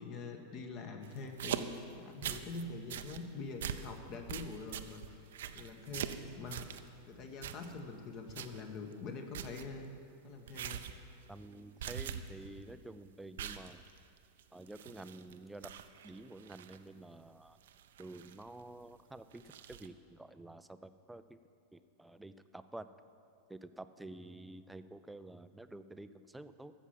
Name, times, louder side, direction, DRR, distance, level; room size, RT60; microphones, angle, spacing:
voice 1, 0.0-9.9 10.2-10.8, left 3 dB, 35° left, 5 dB, 1.4 m, -45 dB
sound 1, 1.0-2.6 2.9-3.2 3.6-3.9 4.3-6.9 7.4-7.9 8.3-8.6 8.9-9.0 9.3-9.7 10.5-11.0 11.3-11.5 11.8-12.5 12.8-12.9 13.4-15.3 15.6-16.8 17.6-18.6 19.3-19.9, right 9 dB, 60° right, 0.6 m, -43 dB
voice 2, 11.3-13.8 14.5-15.7 16.0-17.6 18.0-21.4 21.7-22.9 23.5-26.7, right 2 dB, 5° right, 12 dB, 0.5 m, -50 dB
13.5 x 7.3 x 7.5 m, 2.5 s
figure-of-eight pair, 90°, 0 cm